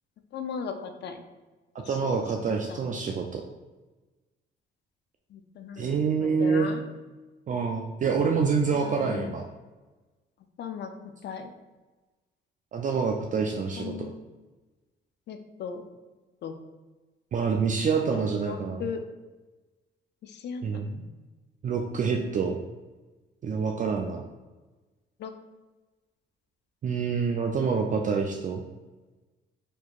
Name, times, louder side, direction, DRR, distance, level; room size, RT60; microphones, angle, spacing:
voice 1, 0.3-1.2 1.8-2.9 5.3-5.9 6.2-6.8 8.7-9.4 10.6-10.9 11.2-11.5 13.5-14.2 15.3-15.8 16.4-16.5 18.1-19.0 20.2-20.9 25.2-25.3, left 6 dB, 60° left, 7 dB, 0.4 m, -37 dB
voice 2, 1.9-3.4 5.8-6.7 7.5-9.4 12.7-14.1 17.3-18.8 20.6-21.0 21.6-22.6 23.4-24.2 26.8-28.6, right 5 dB, 40° right, 1 dB, 0.4 m, -27 dB
4.5 x 2.8 x 2.4 m, 1.2 s
cardioid pair, 90°, 20 cm